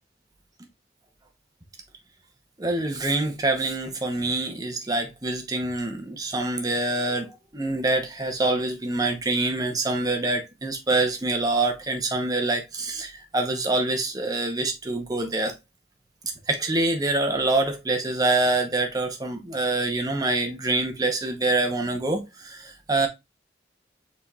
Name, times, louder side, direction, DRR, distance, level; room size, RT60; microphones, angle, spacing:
voice 1, 2.6-15.5 16.5-23.1, right 2 dB, 20° right, 0.9 m, -25 dB
5.0 x 4.2 x 2.4 m
head